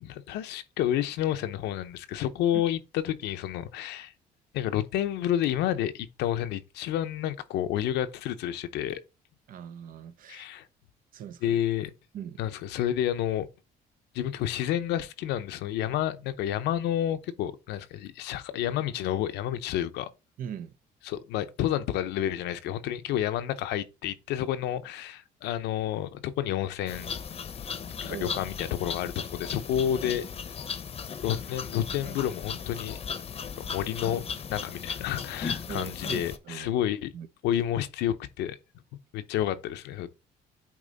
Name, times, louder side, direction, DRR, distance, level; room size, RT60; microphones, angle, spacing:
voice 1, 0.0-4.1 4.5-9.0 10.3-10.6 11.4-11.9 12.4-13.5 14.1-20.1 21.0-27.1 28.0-30.3 31.2-33.0 33.6-34.2 34.5-37.1 37.4-38.6 39.1-40.1, left 11 dB, 85° left, 0.7 m, -30 dB
voice 2, 9.5-10.5 11.1-11.6 12.1-12.4 20.4-20.7 28.1-28.3 35.7-36.7 37.1-37.3, right 9 dB, 55° right, 0.6 m, -40 dB
sound 1, 26.9-36.4, left 6 dB, 35° left, 0.8 m, -36 dB
8.6 x 3.1 x 4.0 m
cardioid pair, 110°, 17 cm